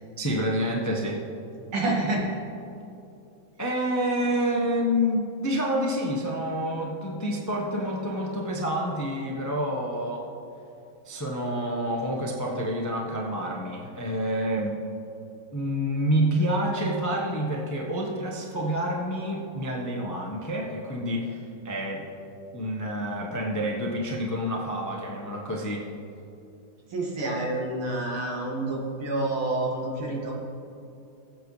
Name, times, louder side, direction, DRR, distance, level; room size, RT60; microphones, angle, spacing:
voice 1, 0.2-1.2 3.6-10.3 11.0-14.8 15.5-22.1 22.5-25.9, equal, 15° left, -2 dB, 0.5 m, -28 dB
voice 2, 1.7-2.3 26.9-30.3, right 2 dB, 80° right, -3 dB, 2.8 m, -28 dB
20.0 x 7.9 x 3.2 m, 2.7 s
omnidirectional pair, 2.3 m